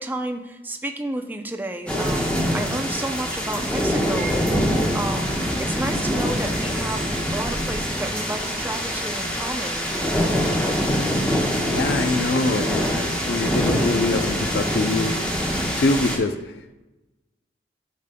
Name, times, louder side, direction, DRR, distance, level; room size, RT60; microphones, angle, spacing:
voice 1, 0.0-9.9, right 1 dB, 10° right, 5 dB, 0.5 m, -31 dB
sound 1, 1.9-16.2, equal, 5° left, 1.1 m, -24 dB
voice 2, 11.7-15.1 15.8-16.5, left 2 dB, 65° left, 9 dB, 0.4 m, -24 dB
12.0 x 5.1 x 2.2 m, 1.0 s
head